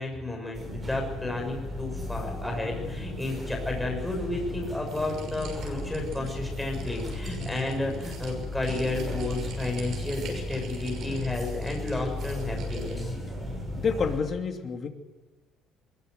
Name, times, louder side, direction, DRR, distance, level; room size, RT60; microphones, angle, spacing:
voice 1, 0.0-13.1, left 2 dB, 5° left, 1 dB, 6.2 m, -32 dB
sound 1, 0.5-14.2, left 1 dB, 20° right, 7.1 m, -35 dB
sound 2, 4.9-13.1, right 6 dB, 60° right, 6.2 m, -48 dB
voice 2, 13.8-14.9, left 5 dB, 35° left, 4 dB, 2.8 m, -28 dB
22.0 x 21.5 x 8.0 m, 1.1 s
cardioid pair, 160°, 0 cm